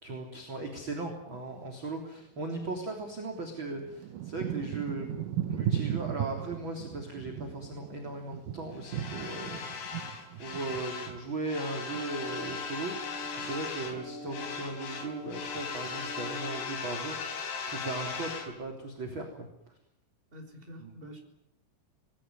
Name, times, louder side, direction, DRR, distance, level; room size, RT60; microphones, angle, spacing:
voice 1, 0.0-5.2 5.5-9.6 10.3-12.9 13.3-19.5 20.8-20.9, right 2 dB, 30° right, 2 dB, 3.7 m, -37 dB
Thunder / Rain, 2.6-2.7 3.4-12.9 13.2-14.1 14.6-15.0 15.3-16.1 16.7-16.8, right 10 dB, 70° right, 2.0 m, -37 dB
sound 1, 8.8-11.2 11.4-14.0 14.3-18.5, left 5 dB, 70° left, 5.7 m, -38 dB
sound 2, 11.5-16.6, left 1 dB, 5° left, 5.9 m, -46 dB
voice 2, 20.3-21.2, equal, 10° right, 4 dB, 4.8 m, -47 dB
27.0 x 20.5 x 9.4 m, 0.77 s
omnidirectional pair, 5.4 m